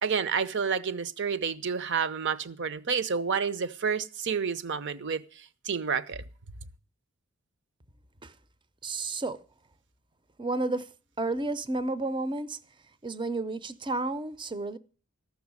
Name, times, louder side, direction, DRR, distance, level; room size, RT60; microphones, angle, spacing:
voice 1, 0.0-5.2 5.6-6.2, right 6 dB, 55° right, 0.8 m, -29 dB
voice 2, 8.8-9.4 10.4-10.9 11.2-12.6 13.0-14.8, right 2 dB, 20° right, 0.6 m, -31 dB
14.0 x 6.3 x 9.5 m
head